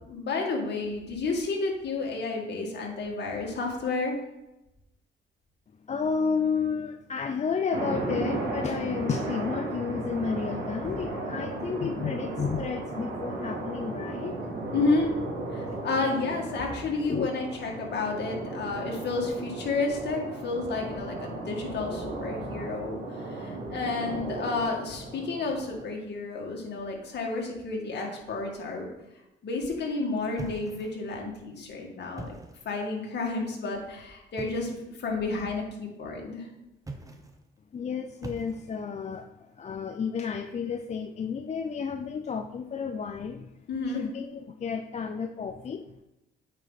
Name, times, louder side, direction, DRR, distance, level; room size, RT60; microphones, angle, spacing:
voice 1, 0.0-4.2 14.7-15.2 15.5-28.9 29.4-32.3 32.7-36.5 43.7-44.1, left 3 dB, 60° left, 0 dB, 2.2 m, -31 dB
voice 2, 5.9-14.4 17.1-17.3 37.7-39.3 39.6-43.6 43.9-45.8, left 6 dB, 35° left, 5 dB, 0.5 m, -31 dB
sound 1, 7.7-25.8, right 2 dB, 70° right, 2.6 m, -35 dB
sound 2, 30.4-31.2 32.0-32.7 34.4-34.8 36.8-37.5 38.2-38.9, right 2 dB, 15° right, 1.0 m, -42 dB
8.9 x 5.0 x 4.1 m, 0.93 s
cardioid pair, 90°, 20 cm